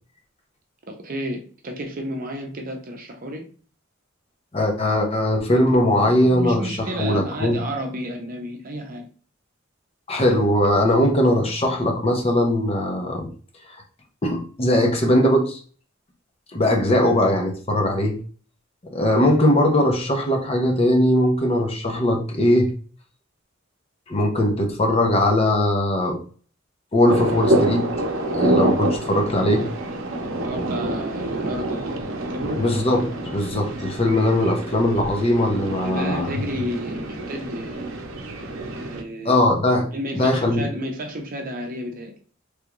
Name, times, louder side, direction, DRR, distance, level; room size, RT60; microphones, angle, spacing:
voice 1, 0.9-3.4 6.2-9.1 30.4-32.6 35.8-37.8 38.8-39.4 39.9-42.1, equal, 45° right, 0.7 m, -31 dB
voice 2, 4.5-7.6 10.1-13.3 14.2-15.6 16.5-18.2 18.8-22.7 24.1-26.2 26.9-27.9 28.3-29.7 32.6-36.3 39.2-40.7, left 1 dB, 30° left, 0.6 m, -20 dB
sound 1, 27.1-39.0, right 1 dB, 85° right, 0.6 m, -27 dB
3.3 x 2.4 x 2.9 m
head